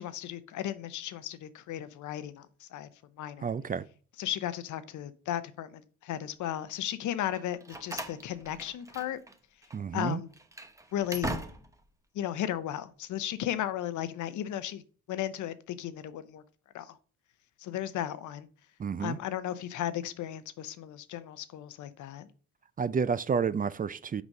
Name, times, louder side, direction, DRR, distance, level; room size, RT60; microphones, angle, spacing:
voice 1, 0.0-2.9 3.2-3.5 4.2-9.2 9.9-10.3 10.9-11.3 12.1-14.8 15.1-16.4 16.7-17.0 17.6-18.5 19.0-22.3, left 11 dB, 75° left, 0.8 m, -35 dB
voice 2, 3.4-3.8 9.7-10.2 18.8-19.2 22.8-24.2, right 6 dB, 30° right, 0.4 m, -30 dB
Slam, 7.3-9.4 9.6-9.8 10.3-11.9, right 1 dB, 10° right, 0.9 m, -40 dB
6.1 x 5.2 x 5.3 m
cardioid pair, 90°, 30 cm